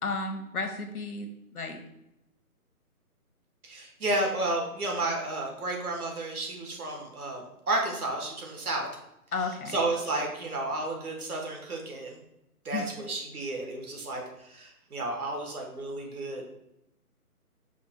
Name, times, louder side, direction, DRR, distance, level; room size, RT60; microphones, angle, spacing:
voice 1, 0.0-1.3 1.5-1.8 9.3-9.8 12.7-12.9, left 3 dB, 70° left, 5 dB, 0.9 m, -32 dB
voice 2, 3.6-8.9 9.4-12.2 12.6-16.5, right 2 dB, 70° right, 1 dB, 1.3 m, -32 dB
5.0 x 2.2 x 4.2 m, 0.84 s
hypercardioid pair, 175°, 46 cm